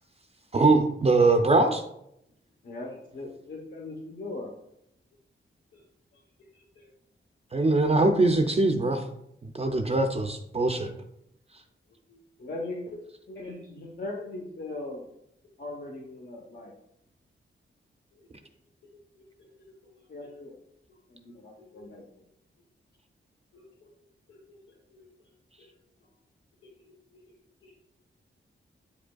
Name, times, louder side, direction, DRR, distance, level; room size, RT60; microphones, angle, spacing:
voice 1, 0.5-1.8 7.5-9.0 9.5-10.9, right 2 dB, 30° right, 5 dB, 0.4 m, -22 dB
voice 2, 2.6-4.5 12.4-13.0 13.3-15.0 15.6-16.7 20.1-20.5 21.1-22.0, left 2 dB, 55° left, -1 dB, 0.9 m, -39 dB
voice 3, 12.1-12.5 13.4-13.6 19.4-19.5 19.8-19.9 20.2-20.3 20.9-21.0 21.6-21.8 23.5-23.9 24.3-24.6 24.9-25.1 25.6-25.7 26.6-26.7 27.1-27.2 27.6-27.7, left 2 dB, 80° left, -3 dB, 1.2 m, -57 dB
8.4 x 5.0 x 2.3 m, 0.78 s
wide cardioid pair, 140°, 21 cm